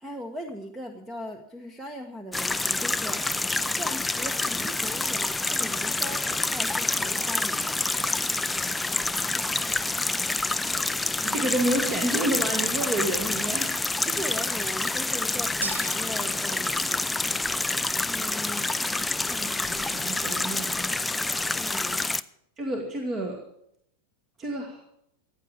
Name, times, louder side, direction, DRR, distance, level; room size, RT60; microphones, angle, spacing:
voice 1, 0.0-3.2 3.8-7.8 14.1-17.1 18.1-19.1 21.5-22.0, equal, 10° right, 7 dB, 1.2 m, -39 dB
sound 1, 2.3-22.2, left 2 dB, 5° left, 0.5 m, -27 dB
voice 2, 11.1-13.8 19.3-20.9 22.6-23.4 24.4-24.8, right 1 dB, 25° right, 3 dB, 1.9 m, -29 dB
sound 2, 15.6-17.1, right 2 dB, 80° right, 1.2 m, -37 dB
15.0 x 9.4 x 7.4 m, 0.76 s
figure-of-eight pair, 90°, 0 cm